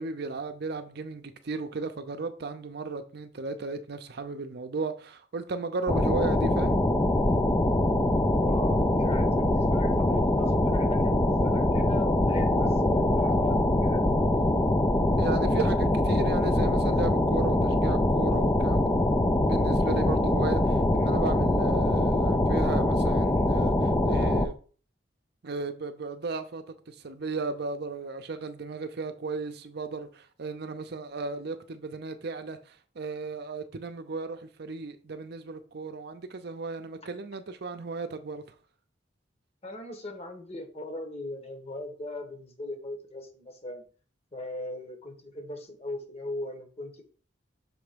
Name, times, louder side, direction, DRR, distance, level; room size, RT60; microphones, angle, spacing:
voice 1, 0.0-6.8 15.2-18.9 19.4-24.5 25.4-38.4, right 3 dB, 60° right, 0.6 m, -35 dB
sound 1, 5.9-24.5, left 1 dB, 15° left, 0.4 m, -23 dB
voice 2, 8.4-14.0 39.6-43.8 44.3-47.0, left 1 dB, 35° left, 1.3 m, -38 dB
6.3 x 3.5 x 5.0 m
head